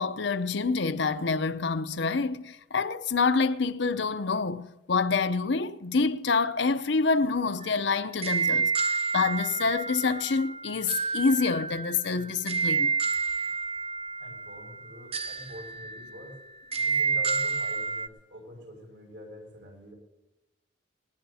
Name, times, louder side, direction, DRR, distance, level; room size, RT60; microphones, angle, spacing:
voice 1, 0.0-12.9, left 4 dB, 65° left, 0.7 m, -27 dB
sound 1, 7.6-18.1, right 5 dB, 30° right, 0.8 m, -30 dB
voice 2, 14.2-16.4 16.8-19.9, equal, 65° right, 6.1 m, -46 dB
19.5 x 19.0 x 2.8 m
head